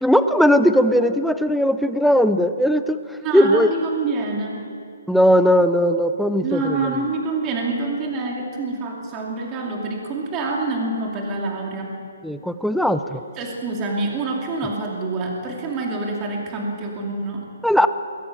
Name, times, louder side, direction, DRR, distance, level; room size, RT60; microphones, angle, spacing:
voice 1, 0.0-3.0 3.3-3.7 5.1-6.6 12.2-13.2 17.6-17.9, equal, ahead, 10 dB, 0.5 m, -18 dB
voice 2, 3.2-4.6 6.4-11.9 13.3-17.4, right 3 dB, 20° right, -1 dB, 2.7 m, -26 dB
22.5 x 16.5 x 9.0 m, 2.3 s
hypercardioid pair, 165°, 0 cm